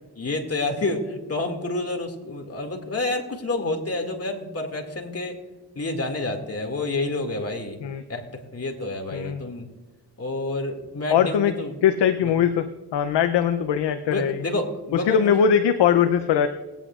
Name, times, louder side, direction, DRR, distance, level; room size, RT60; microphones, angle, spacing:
voice 1, 0.2-5.4 5.8-7.8 8.1-9.7 10.2-11.8 13.4-13.5 14.0-15.5, left 2 dB, 35° left, 3 dB, 2.2 m, -29 dB
voice 2, 9.1-9.4 11.1-11.5 11.8-14.4 15.1-16.5, left 8 dB, 85° left, 9 dB, 0.7 m, -21 dB
20.0 x 9.1 x 2.4 m, 1.2 s
cardioid pair, 50°, 41 cm